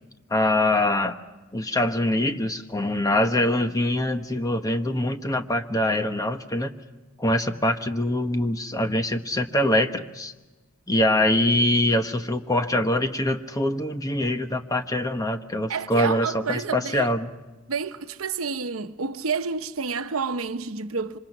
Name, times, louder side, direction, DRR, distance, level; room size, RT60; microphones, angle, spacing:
voice 1, 0.3-1.2 1.5-6.7 7.2-10.3 10.9-17.3, left 1 dB, 15° left, 1.2 m, -24 dB
voice 2, 15.7-17.1 17.7-21.2, right 5 dB, 90° right, 0.9 m, -29 dB
27.0 x 25.5 x 6.0 m
head